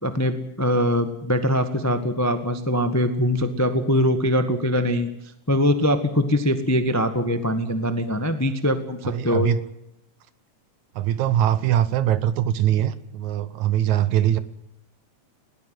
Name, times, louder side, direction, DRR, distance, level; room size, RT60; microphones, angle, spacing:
voice 1, 0.0-5.1 5.5-9.5, equal, 15° left, 8 dB, 0.5 m, -22 dB
voice 2, 9.0-9.6 11.0-14.4, right 11 dB, 70° right, 15 dB, 2.1 m, -22 dB
20.5 x 18.0 x 7.9 m, 0.81 s
omnidirectional pair, 3.7 m